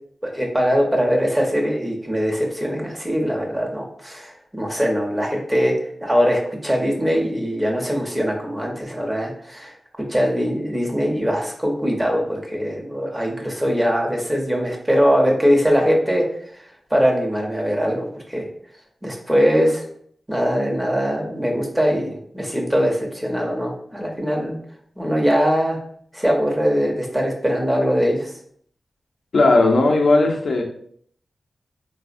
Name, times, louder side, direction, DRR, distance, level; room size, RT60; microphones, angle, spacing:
voice 1, 0.2-5.7 6.0-9.7 10.1-16.2 16.9-18.5 19.0-19.8 20.3-24.6 25.0-25.8 26.1-28.3, equal, 15° right, 0 dB, 0.7 m, -21 dB
voice 2, 29.3-30.6, left 2 dB, 80° left, 1 dB, 0.4 m, -16 dB
3.3 x 2.0 x 2.5 m, 0.62 s
wide cardioid pair, 75°, 0 cm